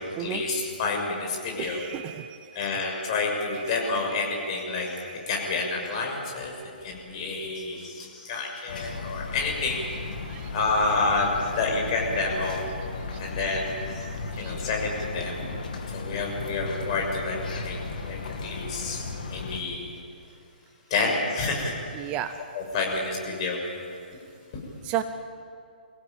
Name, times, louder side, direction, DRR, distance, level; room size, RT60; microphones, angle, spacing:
voice 1, 0.2-1.8 2.5-4.9 5.3-6.5 6.8-9.8 10.5-12.6 13.2-13.7 14.4-15.3 15.9-19.8 20.9-21.7 22.5-23.6, left 3 dB, 35° left, 0 dB, 6.6 m, -29 dB
voice 2, 1.6-2.7 3.5-3.6 4.7-5.2 7.2-7.3 10.1-10.8 13.0-13.2 14.0-14.7 21.9-22.5 24.8-25.0, right 12 dB, 20° right, 10 dB, 0.7 m, -35 dB
sound 1, 8.7-19.6, left 3 dB, 55° left, 2.7 m, -35 dB
24.0 x 16.5 x 9.0 m, 2.5 s
figure-of-eight pair, 130°, 5 cm